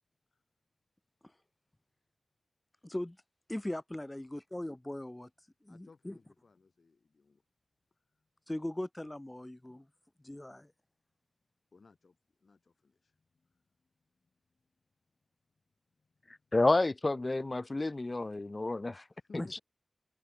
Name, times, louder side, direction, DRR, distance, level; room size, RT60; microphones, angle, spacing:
voice 1, 2.8-3.2 3.5-5.3 5.6-6.2 8.5-9.8 10.2-10.7 19.3-19.6, left 1 dB, 15° left, 1.5 m, -39 dB
voice 2, 5.7-7.4 7.9-8.3 11.7-14.3 16.0-16.1 16.5-16.6 19.1-19.6, left 4 dB, 70° left, 3.7 m, -63 dB
voice 3, 16.5-19.0, left 2 dB, 35° left, 0.4 m, -29 dB
wide cardioid pair, 65°, 0 cm